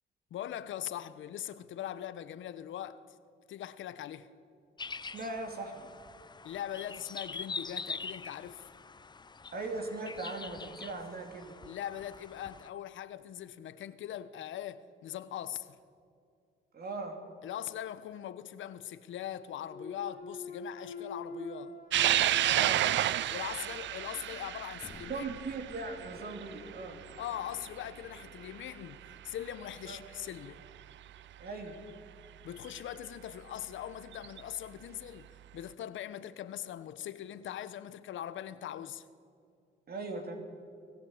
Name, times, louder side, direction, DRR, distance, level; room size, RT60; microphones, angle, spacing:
voice 1, 0.3-3.0 3.5-4.3 6.4-8.7 11.7-15.8 17.4-21.8 23.3-25.3 27.2-30.6 32.4-39.1, left 11 dB, 75° left, 1.1 m, -41 dB
sound 1, 4.8-12.7, left 4 dB, 20° left, 0.6 m, -44 dB
voice 2, 5.0-5.9 9.5-11.5 16.7-17.2 22.4-22.9 25.1-27.0 29.9-30.0 31.4-31.8 39.9-40.4, right 3 dB, 50° right, 2.9 m, -39 dB
Thump thud, 19.6-23.7 24.1-28.8, left 2 dB, 40° left, 2.5 m, -47 dB
sound 2, 21.9-28.6 29.0-29.1 30.4-30.5 32.6-32.7 34.1-34.4, right 12 dB, 70° right, 0.6 m, -31 dB
25.0 x 18.0 x 8.8 m
cardioid pair, 90°, 20 cm